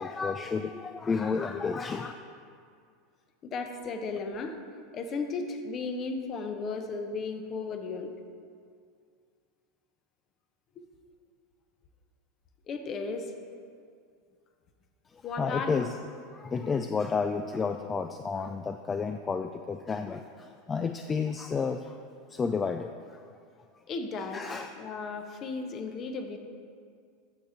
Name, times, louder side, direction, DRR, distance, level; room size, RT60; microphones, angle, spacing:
voice 1, 0.0-2.1 15.1-15.9 16.3-22.0 22.3-23.2 24.3-24.7, left 5 dB, 25° left, 8 dB, 0.4 m, -31 dB
voice 2, 3.4-4.6 4.9-8.1 10.8-10.9 12.7-13.3 15.2-15.9 16.6-16.8 23.9-24.5 24.8-26.4, left 4 dB, 40° left, 6 dB, 1.0 m, -35 dB
14.0 x 5.0 x 4.1 m, 2.2 s
hypercardioid pair, 85°, 0 cm